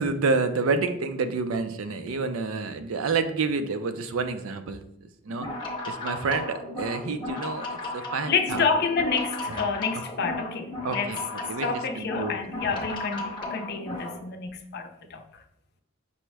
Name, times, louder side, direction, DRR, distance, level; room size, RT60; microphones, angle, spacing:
voice 1, 0.0-4.8 5.2-5.5 5.9-8.7 9.5-9.7 10.8-11.2 11.5-12.4 12.7-12.9, right 4 dB, 80° right, 0.5 m, -29 dB
sound 1, 5.3-14.2, left 2 dB, 25° left, 0.7 m, -35 dB
voice 2, 8.3-11.1 11.4-15.2, left 5 dB, 55° left, 0.5 m, -29 dB
5.5 x 2.1 x 4.6 m
head